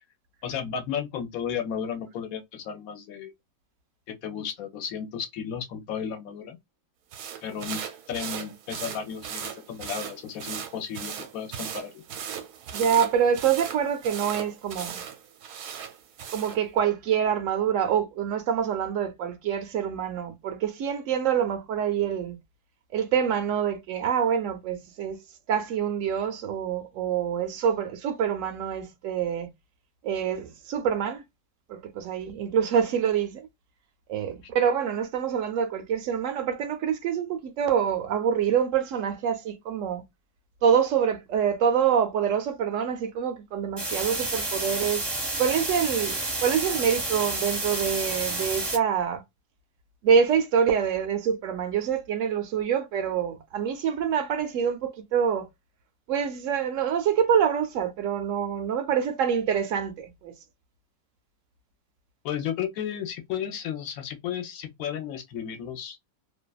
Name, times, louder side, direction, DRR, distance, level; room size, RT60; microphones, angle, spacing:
voice 1, 0.4-3.3 4.2-6.6 7.4-7.8 8.1-12.0 62.2-66.0, left 8 dB, 70° left, 1.0 m, -33 dB
sound 1, 7.1-16.6, right 8 dB, 85° right, 1.2 m, -38 dB
voice 2, 12.7-15.0 16.3-22.4 22.9-25.2 25.5-29.5 30.0-31.2 31.7-33.4 34.1-40.0 40.6-45.0 45.4-49.2 50.0-55.5 56.1-60.3, right 8 dB, 70° right, 0.8 m, -26 dB
sound 2, 43.8-48.8, right 2 dB, 25° right, 0.6 m, -30 dB
2.7 x 2.2 x 2.2 m
omnidirectional pair, 1.7 m